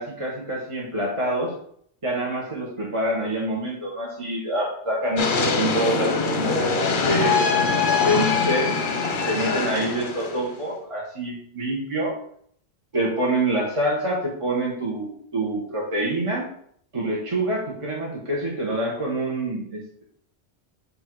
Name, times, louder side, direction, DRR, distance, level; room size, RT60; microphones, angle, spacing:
voice 1, 0.0-1.5 2.0-7.4 8.0-8.8 9.3-12.1 12.9-16.4 16.9-20.0, right 1 dB, 30° right, -4 dB, 1.2 m, -26 dB
sound 1, 5.2-10.6, left 4 dB, 50° left, 0.8 m, -23 dB
8.2 x 2.7 x 4.6 m, 0.64 s
omnidirectional pair, 1.2 m